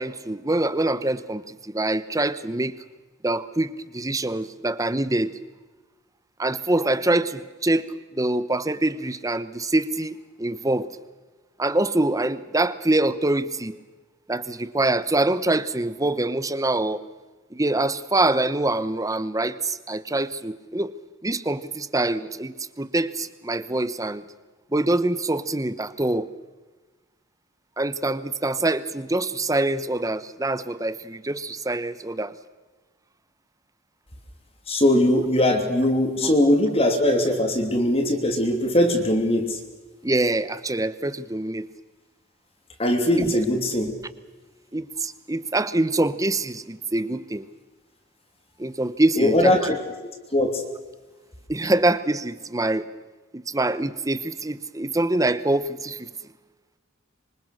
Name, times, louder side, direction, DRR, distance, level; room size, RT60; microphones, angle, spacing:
voice 1, 0.0-2.8 3.2-5.4 6.4-10.9 11.6-13.7 14.3-17.0 17.5-20.9 21.2-24.2 24.7-26.3 27.8-32.3 36.2-36.3 40.0-41.7 43.1-43.4 44.7-47.5 48.6-49.8 51.5-52.9 53.3-56.1, right 2 dB, 15° right, 15 dB, 0.9 m, -25 dB
voice 2, 34.7-39.6 42.8-43.9 49.2-49.7 50.3-50.7, left 1 dB, 30° left, 4 dB, 2.9 m, -20 dB
26.0 x 24.5 x 6.5 m, 1.3 s
head